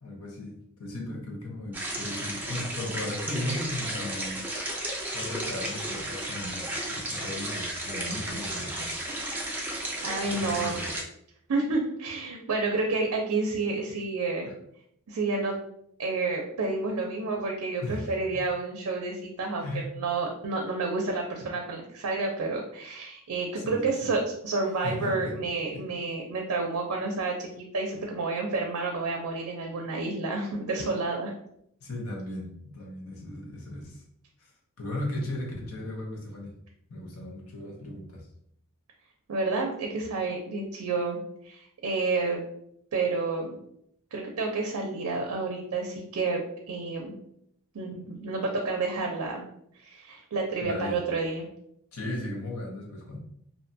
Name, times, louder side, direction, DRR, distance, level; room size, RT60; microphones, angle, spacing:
voice 1, 0.0-4.4 5.1-8.9 10.3-10.9 14.4-14.5 17.8-18.4 19.6-19.9 23.6-24.2 24.8-25.3 25.7-25.8 31.8-34.0 34.4-34.5 34.8-36.5 36.9-38.3 50.6-51.0 51.9-53.2, left 1 dB, 85° left, 0 dB, 0.8 m, -36 dB
sound 1, 1.7-11.0, right 1 dB, 10° right, 0.4 m, -33 dB
voice 2, 9.6-10.8 11.5-14.5 15.1-15.6 16.0-19.7 19.9-31.3 39.3-41.2 41.4-42.4 42.9-43.5 44.1-46.4 46.7-47.1 47.7-49.4 49.8-51.5, right 3 dB, 90° right, 1 dB, 0.4 m, -30 dB
2.6 x 2.2 x 2.6 m, 0.72 s
head